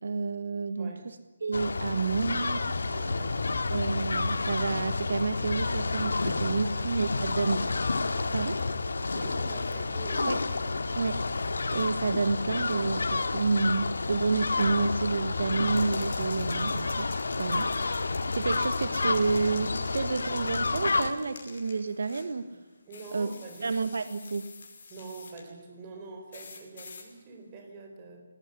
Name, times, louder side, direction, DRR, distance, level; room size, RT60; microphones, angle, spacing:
voice 1, 0.0-0.9 1.4-2.6 2.9-3.1 3.7-7.6 8.3-8.6 10.2-10.4 10.9-11.2 11.7-17.1 17.4-17.7 18.3-22.5 23.1-23.3 23.6-24.5, right 4 dB, 65° right, 11 dB, 1.5 m, -29 dB
voice 2, 0.8-1.1 2.9-3.3 6.2-7.4 9.1-10.3 22.4-22.6 22.9-23.7 24.9-28.2, right 3 dB, 20° right, 4 dB, 4.2 m, -45 dB
sound 1, 1.5-21.1, left 3 dB, 85° left, 2.3 m, -30 dB
sound 2, 15.7-22.3 22.9-25.4 26.3-27.1, left 4 dB, 45° left, 5.4 m, -48 dB
19.5 x 18.5 x 10.0 m, 1.2 s
hypercardioid pair, 175°, 0 cm